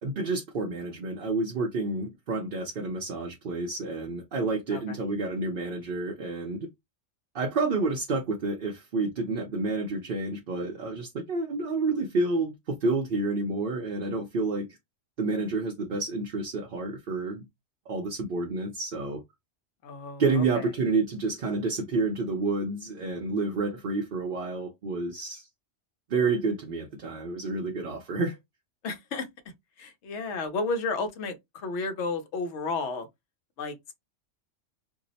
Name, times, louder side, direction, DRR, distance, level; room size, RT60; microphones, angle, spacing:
voice 1, 0.0-6.7 7.3-14.7 15.2-17.5 17.9-19.2 20.2-25.5 26.1-28.4, right 3 dB, 55° right, 0.7 m, -29 dB
voice 2, 19.8-20.7 28.8-29.3 29.8-33.1 33.6-33.9, left 3 dB, 65° left, 1.0 m, -32 dB
2.7 x 2.0 x 3.9 m
omnidirectional pair, 1.3 m